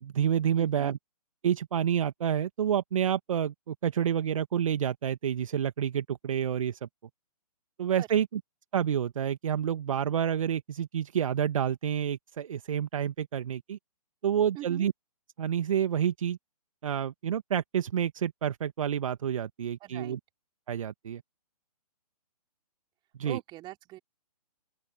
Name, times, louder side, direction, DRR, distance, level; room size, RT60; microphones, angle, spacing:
voice 1, 0.0-1.0 1.4-6.9 7.8-8.4 8.7-13.8 14.2-14.9 15.4-16.4 16.8-20.2 20.7-21.2 23.2-23.4, right 9 dB, 55° right, 1.6 m, -29 dB
voice 2, 0.6-0.9 8.0-8.2 14.5-14.9 19.8-20.2 23.2-24.0, right 16 dB, 20° right, 4.4 m, -42 dB
open air
figure-of-eight pair, 130°, 20 cm